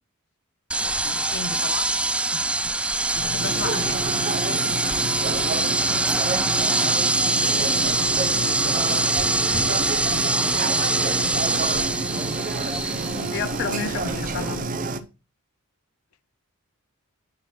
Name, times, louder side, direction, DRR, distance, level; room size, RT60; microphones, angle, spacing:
sound 1, 0.7-14.6, right 2 dB, 5° right, 0.3 m, -24 dB
voice 1, 0.8-1.2 3.1-3.6 5.5-6.6 7.0-9.8 13.0-14.7, left 4 dB, 90° left, 0.7 m, -40 dB
voice 2, 1.3-2.0 2.3-4.0 11.4-11.7 13.3-14.6, left 5 dB, 55° left, 0.7 m, -33 dB
sound 2, 3.4-15.0, right 3 dB, 40° right, 0.7 m, -28 dB
9.5 x 3.2 x 6.0 m
head